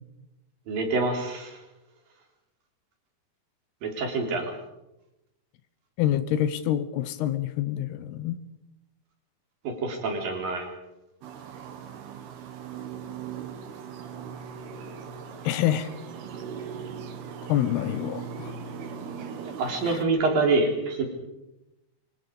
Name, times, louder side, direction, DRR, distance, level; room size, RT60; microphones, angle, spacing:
voice 1, 0.7-1.6 3.8-4.5 9.6-10.7 19.6-21.0, right 3 dB, 60° right, 3 dB, 5.5 m, -26 dB
voice 2, 6.0-8.4 15.4-15.9 17.5-18.5 19.9-20.0, left 12 dB, 85° left, 12 dB, 3.0 m, -26 dB
sound 1, 11.2-20.1, right 6 dB, 75° right, 3.9 m, -39 dB
26.0 x 25.0 x 5.4 m, 0.95 s
omnidirectional pair, 4.6 m